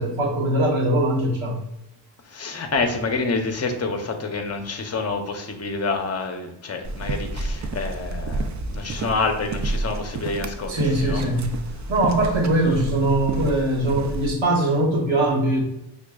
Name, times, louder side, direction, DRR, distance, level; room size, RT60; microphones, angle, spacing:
voice 1, 0.0-1.6 10.7-11.5 11.9-15.6, right 1 dB, 80° right, -1 dB, 1.2 m, -21 dB
voice 2, 2.3-11.3 12.2-12.4, left 3 dB, 35° left, 4 dB, 0.7 m, -28 dB
sound 1, 6.8-14.3, right 2 dB, 40° right, 0.4 m, -30 dB
5.8 x 2.4 x 2.3 m, 0.84 s
cardioid pair, 80°, 46 cm